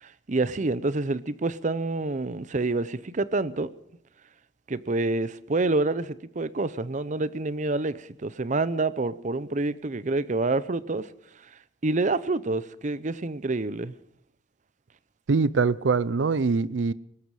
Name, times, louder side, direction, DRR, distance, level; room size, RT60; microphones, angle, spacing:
voice 1, 0.0-3.7 4.7-11.1 11.8-13.9, right 2 dB, 40° right, 0.7 m, -27 dB
voice 2, 15.3-16.9, right 4 dB, 90° right, 0.5 m, -23 dB
19.0 x 14.0 x 4.9 m
head